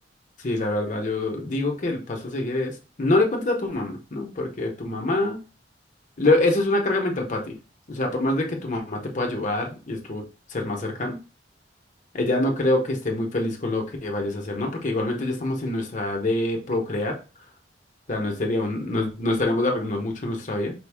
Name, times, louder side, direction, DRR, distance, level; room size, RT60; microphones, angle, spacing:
voice 1, 0.4-5.4 6.2-7.6 7.9-10.2 10.5-11.2 12.1-17.2 18.1-20.7, left 2 dB, 45° left, 2 dB, 1.0 m, -25 dB
5.2 x 2.3 x 3.5 m, 0.33 s
head